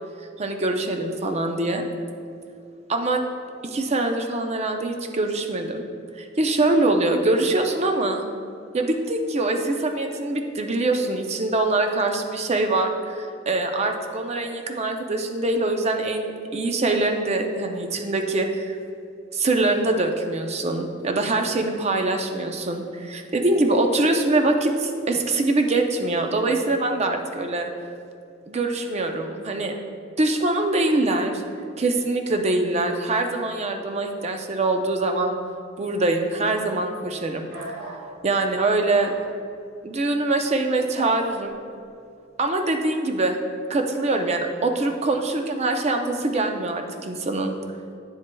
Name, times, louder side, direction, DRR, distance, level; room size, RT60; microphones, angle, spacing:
voice 1, 0.4-1.9 2.9-3.2 3.6-5.8 6.2-8.2 8.7-18.8 19.3-27.7 28.5-29.7 30.2-31.4 31.8-35.4 35.8-37.5 38.2-39.1 39.8-41.5 42.4-43.4 43.7-47.5, right 2 dB, 35° right, 4 dB, 0.5 m, -23 dB
sound 1, 37.5-38.0 38.9-39.2 40.9-41.2, right 2 dB, 55° right, 1.5 m, -37 dB
8.9 x 7.5 x 2.2 m, 2.5 s
head